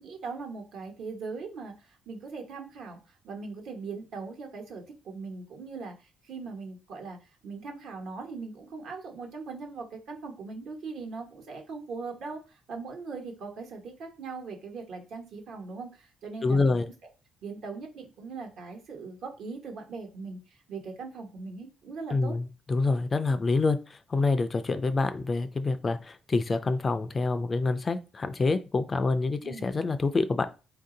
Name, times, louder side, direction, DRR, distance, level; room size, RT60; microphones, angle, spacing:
voice 1, 0.0-3.0 3.2-7.2 7.4-16.9 17.4-20.4 20.7-22.3 29.4-29.7, right 4 dB, 70° right, 2 dB, 1.2 m, -40 dB
voice 2, 16.4-16.9 22.1-30.5, left 3 dB, 25° left, 11 dB, 0.3 m, -27 dB
4.0 x 2.6 x 3.8 m, 0.31 s
cardioid pair, 150°, 0 cm